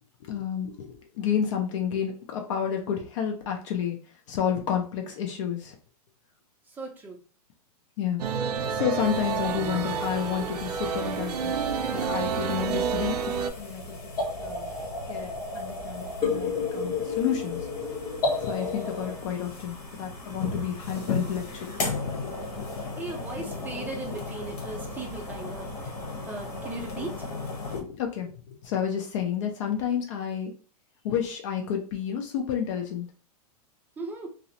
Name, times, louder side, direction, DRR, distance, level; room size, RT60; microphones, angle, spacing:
voice 1, 0.3-4.0 4.3-5.8 8.0-8.2 8.7-11.5 11.9-14.0 14.4-14.7 15.1-15.3 15.5-17.6 18.4-21.7 22.1-22.8 27.7-30.5 31.0-33.1, left 8 dB, 50° left, 3 dB, 0.6 m, -30 dB
voice 2, 6.7-7.2 23.0-25.9 26.3-27.2 34.0-34.3, right 3 dB, 10° right, 0 dB, 0.5 m, -37 dB
sound 1, 8.2-13.5, right 7 dB, 85° right, 0.4 m, -29 dB
sound 2, 9.0-27.8, left 3 dB, 75° left, 1.1 m, -37 dB
sound 3, 12.5-19.1, left 4 dB, 15° left, 0.9 m, -32 dB
2.4 x 2.1 x 2.7 m, 0.39 s
hypercardioid pair, 135°, 20 cm